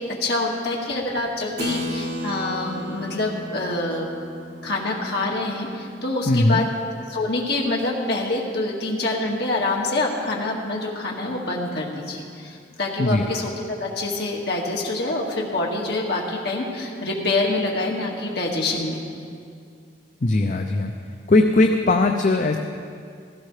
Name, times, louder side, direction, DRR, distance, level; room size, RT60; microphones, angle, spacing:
voice 1, 0.0-4.1 4.6-6.7 7.1-19.0, left 2 dB, 65° left, -2 dB, 2.0 m, -26 dB
Keyboard (musical), 1.6-7.6, equal, 65° right, 1.4 m, -35 dB
voice 2, 6.3-6.6 13.0-13.2 20.2-20.9 21.3-22.6, left 2 dB, 45° left, 5 dB, 0.6 m, -19 dB
16.5 x 14.5 x 3.3 m, 2.3 s
head